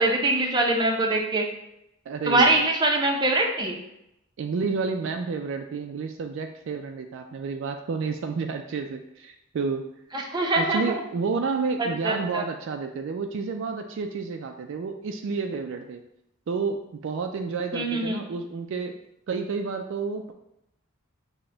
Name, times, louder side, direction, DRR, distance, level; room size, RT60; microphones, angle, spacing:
voice 1, 0.0-1.5 2.3-3.8 10.1-10.8 11.8-12.4 17.7-18.2, right 2 dB, 20° right, 1 dB, 0.6 m, -23 dB
voice 2, 2.1-2.6 4.4-9.9 10.6-16.0 16.5-19.0 19.3-20.3, right 4 dB, 60° right, 5 dB, 0.3 m, -30 dB
5.9 x 2.2 x 3.8 m, 0.83 s
head